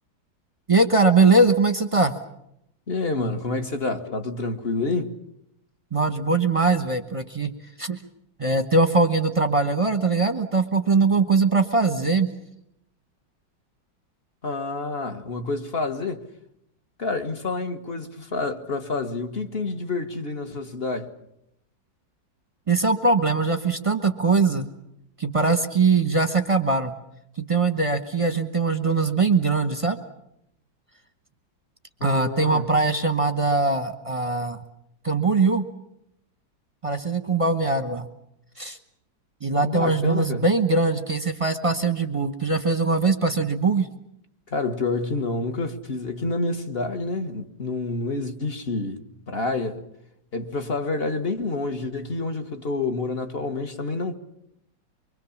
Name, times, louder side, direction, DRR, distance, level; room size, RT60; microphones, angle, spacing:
voice 1, 0.7-2.1 5.9-7.5 7.8-8.0 8.4-12.3 22.7-24.7 25.2-26.9 27.5-30.0 32.0-34.6 35.0-35.7 36.8-38.1 38.6-38.8 39.4-43.9, right 3 dB, 20° right, 1.0 m, -21 dB
voice 2, 2.9-5.2 14.4-16.2 17.0-21.1 32.0-32.6 39.6-40.4 44.5-49.8 50.3-54.2, left 3 dB, 35° left, 1.5 m, -28 dB
24.0 x 24.0 x 7.2 m
omnidirectional pair, 2.1 m